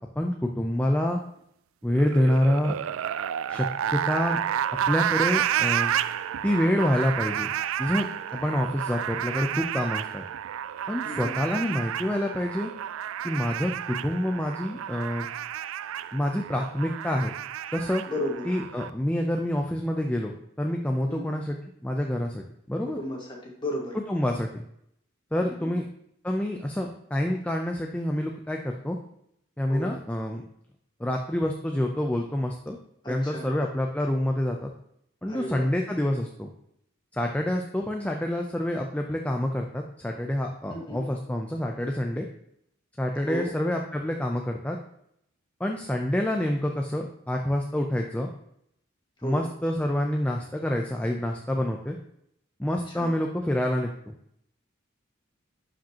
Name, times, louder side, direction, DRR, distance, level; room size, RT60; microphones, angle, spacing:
voice 1, 0.2-1.2 1.8-2.7 3.5-4.4 4.9-5.9 6.4-7.5 7.8-10.2 10.9-12.7 13.2-15.3 16.1-17.3 17.7-18.0 18.5-20.3 20.6-23.0 24.1-24.6 25.3-25.9 26.2-29.0 29.6-30.4 31.0-32.8 33.1-34.7 35.2-36.5 37.1-42.3 43.0-44.8 45.6-48.3 49.2-52.0 52.6-54.1, left 1 dB, 5° left, 2 dB, 0.5 m, -27 dB
sound 1, 1.9-18.9, right 10 dB, 85° right, 0.3 m, -31 dB
voice 2, 11.0-11.4 18.1-18.5 21.1-21.3 22.8-24.0 25.6-25.7 29.7-29.9 33.0-33.5 35.3-35.7 40.7-41.0 43.3-43.5 49.2-49.4 52.9-53.1, equal, 20° left, -1 dB, 1.7 m, -34 dB
11.5 x 5.1 x 2.9 m, 0.74 s
head